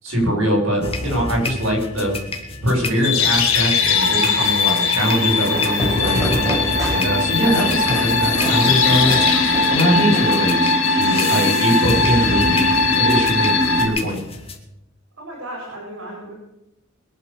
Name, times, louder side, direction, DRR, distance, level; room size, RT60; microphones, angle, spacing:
voice 1, 0.0-2.1 2.6-6.3 6.8-9.2 9.7-12.7 13.0-14.2, equal, 65° right, -2 dB, 6.3 m, -22 dB
sound 1, 0.8-14.6, left 2 dB, 30° left, 2.0 m, -29 dB
sound 2, 3.0-13.9, left 3 dB, 75° left, 3.8 m, -19 dB
Fireworks, 5.5-11.0, right 1 dB, 15° right, 5.4 m, -31 dB
voice 2, 15.2-16.3, right 1 dB, 85° right, -1 dB, 4.6 m, -34 dB
22.0 x 7.5 x 6.9 m, 0.87 s
head